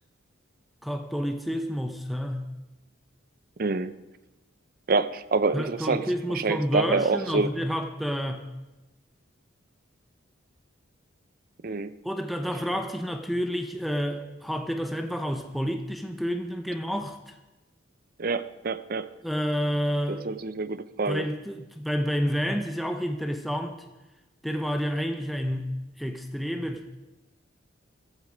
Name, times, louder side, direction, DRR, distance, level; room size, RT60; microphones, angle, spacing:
voice 1, 0.8-2.5 5.5-8.5 12.0-17.4 19.2-20.2 21.1-23.9 24.4-27.0, equal, ahead, 6 dB, 0.7 m, -29 dB
voice 2, 3.6-3.9 4.9-6.0 6.3-7.5 11.6-11.9 18.2-19.1 20.1-21.2, right 4 dB, 45° right, 13 dB, 0.6 m, -26 dB
15.0 x 13.0 x 5.1 m, 1.1 s
head